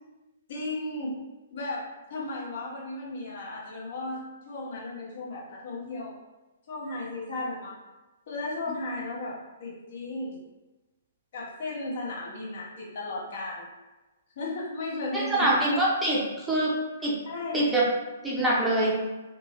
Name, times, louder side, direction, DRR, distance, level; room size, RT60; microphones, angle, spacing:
voice 1, 0.5-1.1 1.5-6.1 6.7-7.8 8.3-10.4 11.3-13.7 14.4-15.7 17.2-17.7, left 2 dB, 55° left, -4 dB, 1.2 m, -35 dB
voice 2, 15.1-16.2 16.5-16.7 17.0-17.1 17.5-17.8 18.2-18.9, right 1 dB, 10° right, -6 dB, 0.7 m, -24 dB
2.9 x 2.9 x 3.0 m, 1.1 s
figure-of-eight pair, 125°, 0 cm